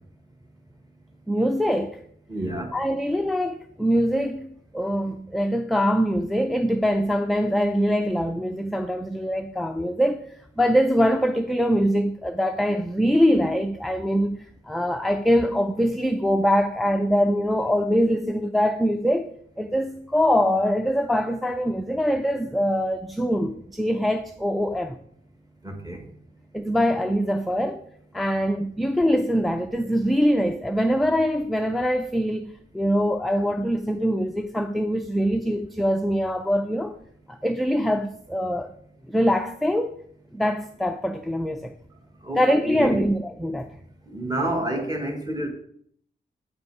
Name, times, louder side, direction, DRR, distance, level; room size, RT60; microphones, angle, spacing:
voice 1, 1.3-2.0 2.7-14.4 14.7-19.3 19.6-25.0 26.5-27.8 28.1-36.9 37.3-38.7 39.1-40.0 40.3-41.7 42.4-43.7, equal, ahead, 0.4 m, -23 dB
voice 2, 2.3-2.7 25.6-26.0 42.2-43.0 44.1-45.5, right 1 dB, 20° right, 1.6 m, -29 dB
8.6 x 5.3 x 4.7 m
wide cardioid pair, 115°, 20 cm